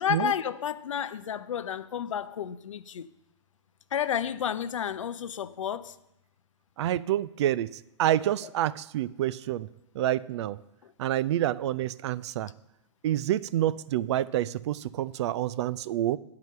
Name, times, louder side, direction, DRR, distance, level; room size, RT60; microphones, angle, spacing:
voice 1, 0.0-3.1 3.9-6.0 8.4-8.5 10.8-10.9, left 9 dB, 80° left, 0.5 m, -31 dB
voice 2, 6.8-7.7 8.0-9.7 10.0-10.6 11.0-12.5 13.0-16.2, right 12 dB, 60° right, 0.4 m, -28 dB
9.4 x 4.8 x 6.7 m
hypercardioid pair, 110°, 16 cm